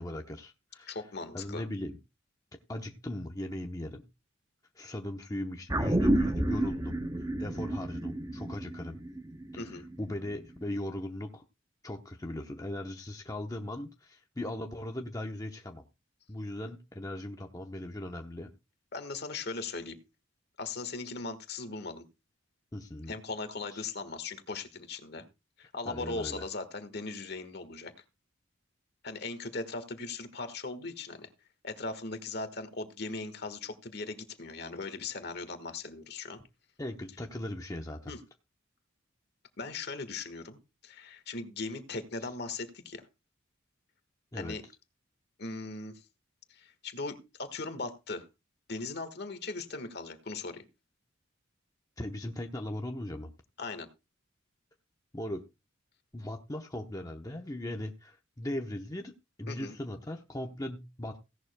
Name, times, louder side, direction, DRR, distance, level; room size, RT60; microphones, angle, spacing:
voice 1, 0.0-1.0 1.3-2.0 2.7-4.0 4.7-7.0 7.4-9.0 9.5-11.4 11.8-15.8 16.3-18.5 22.7-23.1 23.7-23.9 25.9-26.4 36.8-38.1 42.2-42.3 44.3-44.6 52.0-53.3 55.1-55.4 56.1-59.1 59.4-61.2, left 1 dB, 15° left, 3 dB, 0.8 m, -38 dB
voice 2, 0.9-1.6 9.6-9.8 18.9-20.0 20.6-22.0 23.1-25.2 25.6-27.9 29.0-31.3 31.6-36.4 38.1-38.2 39.6-40.6 40.8-43.0 44.4-44.6 45.4-45.9 46.5-48.3 48.7-50.6 53.6-53.9 59.5-59.7, left 3 dB, 55° left, 11 dB, 1.5 m, -39 dB
sound 1, 5.7-10.3 10.6-10.7, right 1 dB, 15° right, 0.7 m, -30 dB
16.5 x 11.5 x 2.2 m, 0.26 s
head